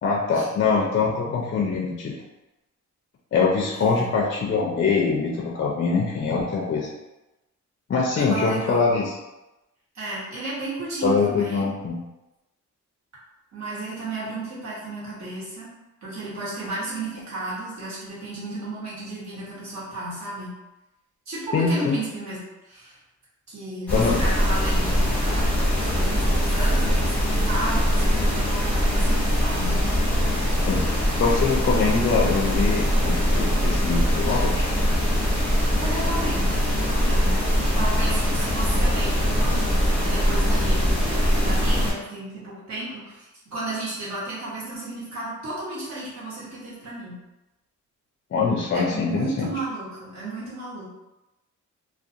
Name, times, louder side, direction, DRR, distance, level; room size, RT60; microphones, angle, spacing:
voice 1, 0.0-2.1 3.3-6.9 7.9-9.1 11.0-12.0 21.5-22.0 23.9-24.2 30.7-30.8 31.1-34.7 48.3-49.5, left 4 dB, 40° left, -2 dB, 0.4 m, -23 dB
voice 2, 3.7-4.1 8.2-8.8 9.9-11.7 13.5-15.7 16.0-20.5 21.3-23.0 23.5-29.8 35.6-47.2 48.7-50.9, right 2 dB, 60° right, -8 dB, 1.2 m, -33 dB
sound 1, 23.9-41.9, equal, 5° left, 0.8 m, -22 dB
2.4 x 2.2 x 2.7 m, 0.99 s
wide cardioid pair, 140°, 31 cm